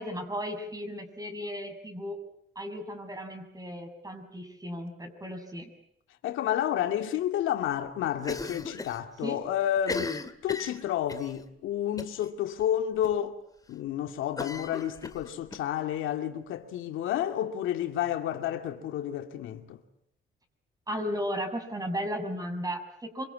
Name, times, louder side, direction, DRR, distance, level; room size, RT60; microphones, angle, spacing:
voice 1, 0.0-2.2 2.6-5.7 9.2-9.4 20.9-23.2, equal, 20° right, 7.0 m, -35 dB
voice 2, 6.2-13.4 13.7-19.8, left 11 dB, 85° left, 2.5 m, -30 dB
Cough, 8.2-9.0 9.3-9.4 9.8-11.3 12.0-12.3 12.6-12.7 13.0-13.1 14.4-15.6, left 3 dB, 20° left, 2.3 m, -37 dB
26.5 x 24.5 x 8.6 m
cardioid pair, 90°, 20 cm